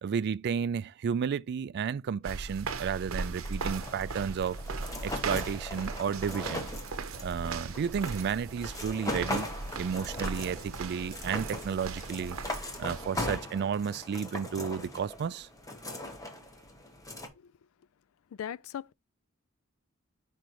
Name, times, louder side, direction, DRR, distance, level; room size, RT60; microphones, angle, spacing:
voice 1, 0.0-4.6 5.0-6.7 7.2-9.5 9.8-12.4 12.8-15.5, right 7 dB, 50° right, 0.3 m, -32 dB
sound 1, 2.2-13.4, right 4 dB, 75° right, 0.7 m, -38 dB
sound 2, 3.4-17.3, left 1 dB, 15° left, 1.1 m, -40 dB
voice 2, 18.4-18.9, left 9 dB, 75° left, 0.3 m, -38 dB
5.1 x 4.8 x 4.4 m
head